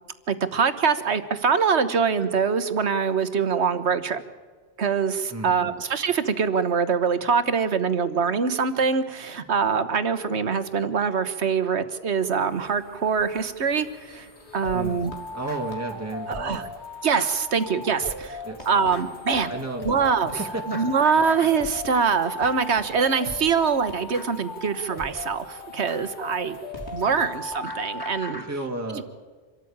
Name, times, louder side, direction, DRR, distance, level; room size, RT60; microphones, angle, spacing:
voice 1, 0.3-4.2 4.8-14.3 14.5-15.1 16.3-16.6 17.0-19.5 19.8-20.4 20.7-26.6 26.9-28.4 28.9-29.0, right 6 dB, 85° right, 12 dB, 1.5 m, -24 dB
voice 2, 5.3-5.8 14.7-16.7 18.4-18.7 19.5-20.8 27.0-27.3 28.3-29.0, right 2 dB, 15° right, 1 dB, 2.1 m, -34 dB
sound 1, 12.3-28.3, left 1 dB, 90° left, 3.5 m, -49 dB
sound 2, 14.6-28.5, left 2 dB, 20° left, 3.4 m, -37 dB
26.0 x 13.5 x 8.8 m, 1.5 s
omnidirectional pair, 1.1 m